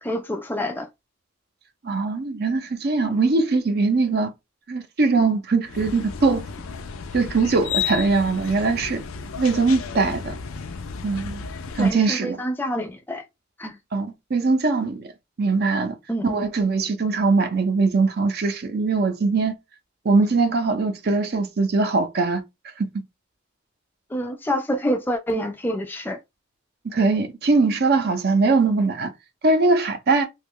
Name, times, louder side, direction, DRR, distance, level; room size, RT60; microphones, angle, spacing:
voice 1, 0.0-0.9 11.8-13.2 13.6-13.8 16.1-16.4 24.1-26.2, equal, 10° left, 0.4 m, -27 dB
voice 2, 1.8-4.3 4.7-6.5 7.1-9.0 9.4-10.4 11.0-11.4 11.7-12.4 13.9-15.1 15.4-16.0 16.2-19.5 20.0-22.4 22.8-22.9 26.8-29.1 29.4-30.2, right 3 dB, 50° right, 0.6 m, -21 dB
sound 1, 5.6-11.9, left 7 dB, 85° left, 0.5 m, -33 dB
3.0 x 2.3 x 3.5 m
head